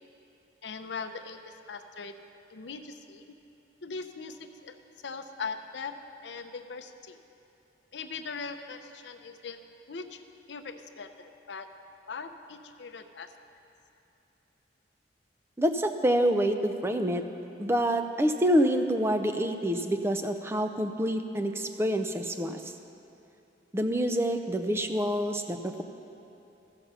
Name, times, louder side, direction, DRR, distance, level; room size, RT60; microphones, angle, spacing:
voice 1, 0.6-2.2 2.5-3.2 3.8-4.8 5.0-5.9 6.2-7.2 7.9-9.6 9.9-10.2 10.5-11.7 12.1-13.3, left 4 dB, 70° left, 7 dB, 0.6 m, -40 dB
voice 2, 15.6-17.2 17.6-22.7 23.7-25.8, equal, 15° right, 7 dB, 0.5 m, -27 dB
14.5 x 7.2 x 5.6 m, 2.9 s
head